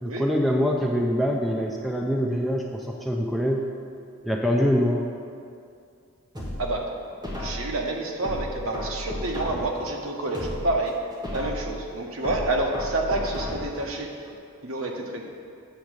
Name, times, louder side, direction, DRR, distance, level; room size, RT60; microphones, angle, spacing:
voice 1, 0.0-3.6 4.2-5.0, equal, ahead, 0 dB, 0.4 m, -24 dB
sound 1, 6.3-7.8 8.2-9.8 10.2-11.8 12.2-13.8 14.2-14.3, equal, 20° right, 1.2 m, -34 dB
voice 2, 6.6-6.9 7.4-11.0 11.3-14.1 14.6-15.3, right 2 dB, 70° right, 1 dB, 0.9 m, -28 dB
8.8 x 3.5 x 6.4 m, 2.4 s
head